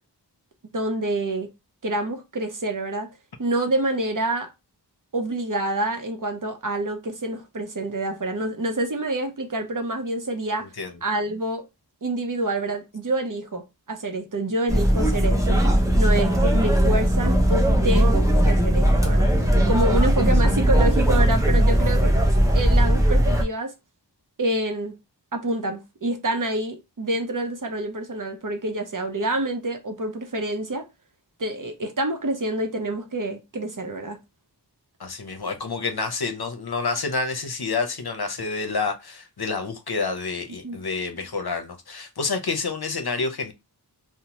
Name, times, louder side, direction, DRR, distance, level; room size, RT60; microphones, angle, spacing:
voice 1, 0.7-1.5 1.8-3.1 3.4-4.5 5.1-10.7 11.0-11.6 12.0-15.6 15.9-19.3 19.7-22.2 22.5-23.7 24.4-25.0 25.3-30.9 31.4-34.2 40.6-40.8, right 1 dB, 50° right, 0.7 m, -27 dB
voice 2, 10.6-11.0 35.0-43.5, left 4 dB, 60° left, 0.6 m, -28 dB
sound 1, 14.7-23.4, equal, 10° right, 0.7 m, -19 dB
2.8 x 2.1 x 2.8 m
wide cardioid pair, 40°, 42 cm